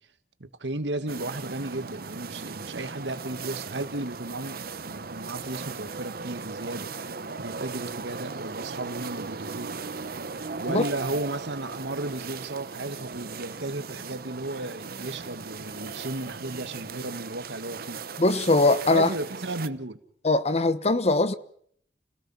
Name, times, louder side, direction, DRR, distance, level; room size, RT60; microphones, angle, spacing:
voice 1, 0.4-6.9 7.4-10.0 10.6-18.0 18.9-20.0, right 2 dB, 85° right, 1.7 m, -34 dB
sound 1, 1.1-19.7, right 4 dB, 60° right, 1.0 m, -38 dB
voice 2, 18.2-19.1 20.2-21.3, left 2 dB, 40° left, 1.1 m, -21 dB
29.5 x 17.5 x 5.7 m
head